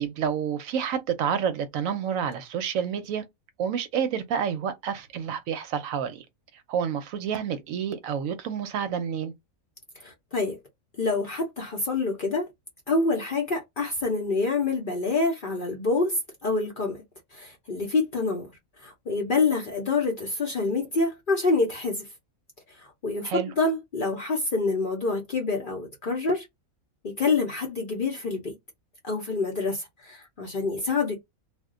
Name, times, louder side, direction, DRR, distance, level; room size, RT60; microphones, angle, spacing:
voice 1, 0.0-3.2 3.6-6.3 6.5-9.3 23.2-23.5, right 8 dB, 75° right, 0.9 m, -29 dB
voice 2, 10.0-10.6 11.0-12.5 12.9-17.0 17.3-18.5 18.8-22.1 22.8-26.5 27.0-28.6 29.0-31.1, left 3 dB, 50° left, 0.7 m, -27 dB
2.4 x 2.1 x 3.6 m
omnidirectional pair, 1.5 m